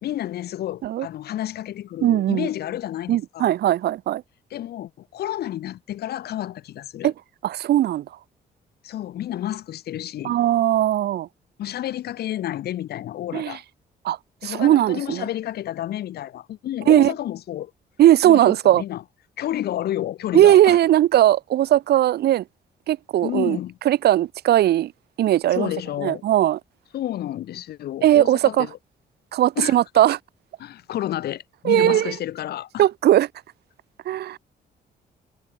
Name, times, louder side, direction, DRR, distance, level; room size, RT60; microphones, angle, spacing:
voice 1, 0.0-3.5 4.5-7.1 8.8-10.4 11.6-13.6 14.4-17.7 18.2-19.0 19.4-20.8 23.2-23.8 25.5-26.2 26.9-28.7 29.6-29.8 30.6-32.9, left 12 dB, 70° left, 5.0 m, -30 dB
voice 2, 2.0-2.5 3.1-4.2 7.0-7.1 7.4-8.0 10.2-11.3 13.3-13.6 14.0-14.2 14.4-15.2 16.9-17.1 18.0-18.8 20.3-22.4 22.9-23.6 23.8-24.9 25.2-25.7 26.0-26.6 28.0-28.7 29.3-30.2 31.6-32.1 32.8-33.3 34.1-34.4, right 13 dB, 70° right, 4.3 m, -18 dB
cardioid pair, 175°, 17 cm